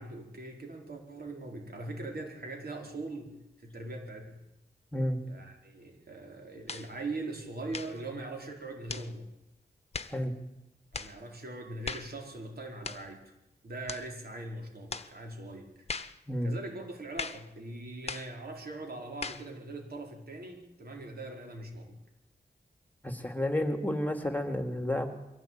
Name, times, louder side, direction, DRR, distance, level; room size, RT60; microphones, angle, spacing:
voice 1, 0.0-4.5 5.2-9.3 10.9-13.3 13.6-15.9 16.4-22.0, right 2 dB, 70° right, 2 dB, 4.9 m, -41 dB
sound 1, 6.7-6.9 7.7-8.0 8.9-9.1 9.9-10.2 10.9-11.2 11.8-12.1 12.8-13.1 13.9-14.1 14.9-15.1 15.9-16.2 17.2-17.5 18.1-18.3 19.2-19.5, left 4 dB, 40° left, 1.1 m, -38 dB
voice 2, 23.0-25.1, left 1 dB, 10° left, 6 dB, 2.7 m, -31 dB
23.5 x 16.5 x 9.2 m, 0.91 s
wide cardioid pair, 90°, 17 cm